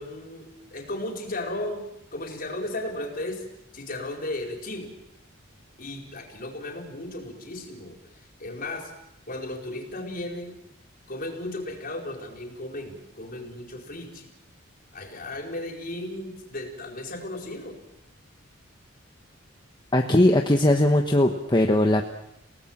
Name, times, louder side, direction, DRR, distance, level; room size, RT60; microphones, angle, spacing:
voice 1, 0.0-3.4 3.7-4.9 5.8-8.0 8.4-8.9 9.3-10.6 11.1-14.3 14.9-17.8, left 1 dB, 45° left, 2 dB, 4.6 m, -35 dB
voice 2, 19.9-22.0, left 1 dB, 20° left, 3 dB, 1.2 m, -19 dB
29.0 x 18.0 x 7.4 m, 0.83 s
head